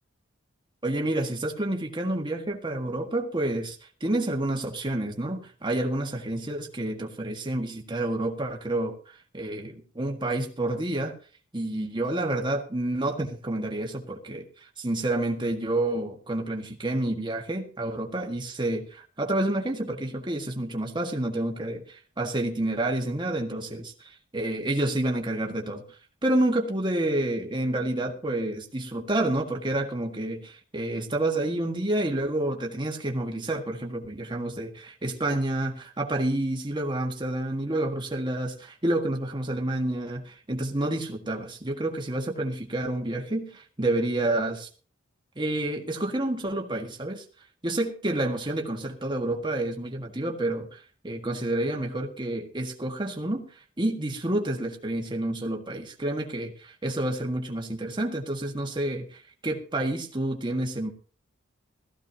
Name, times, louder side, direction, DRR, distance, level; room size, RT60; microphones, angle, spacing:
voice 1, 0.8-9.0 9.3-11.2 11.5-25.8 26.2-44.7 45.3-47.2 47.6-53.4 53.8-60.9, right 1 dB, 25° right, 1 dB, 1.7 m, -29 dB
18.0 x 14.5 x 2.9 m, 0.38 s
head